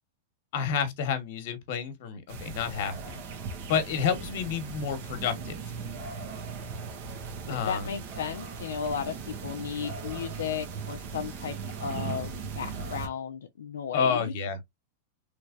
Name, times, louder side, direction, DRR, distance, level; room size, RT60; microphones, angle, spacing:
voice 1, 0.5-3.2 3.7-5.6 7.5-7.9 13.9-14.6, left 7 dB, 60° left, 1.2 m, -29 dB
sound 1, 2.3-13.1, right 5 dB, 55° right, 1.0 m, -38 dB
voice 2, 7.5-9.1 9.4-11.6 11.8-14.3, left 7 dB, 85° left, 0.5 m, -34 dB
3.3 x 3.1 x 2.5 m
hypercardioid pair, 125°, 0 cm